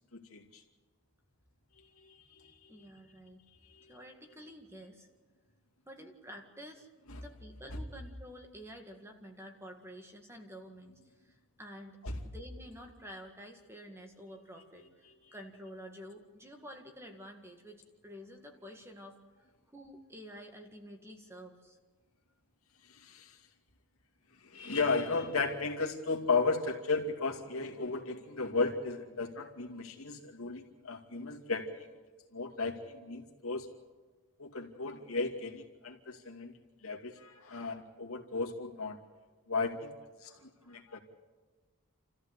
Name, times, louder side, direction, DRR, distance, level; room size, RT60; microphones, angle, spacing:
voice 1, 0.1-0.6 2.0-2.9 3.6-4.0 7.1-7.2 7.7-7.8 12.0-12.2 22.8-23.4 24.4-31.9 32.3-33.7 34.4-36.5 36.8-39.0 39.5-39.9 40.2-41.0, left 3 dB, 70° left, 2 dB, 2.5 m, -35 dB
voice 2, 2.7-3.4 3.9-5.1 5.9-6.9 7.1-11.0 11.2-12.0 12.2-19.2 19.7-21.8 40.2-40.8, equal, 10° right, 4 dB, 1.9 m, -50 dB
29.0 x 14.5 x 8.2 m, 1.3 s
head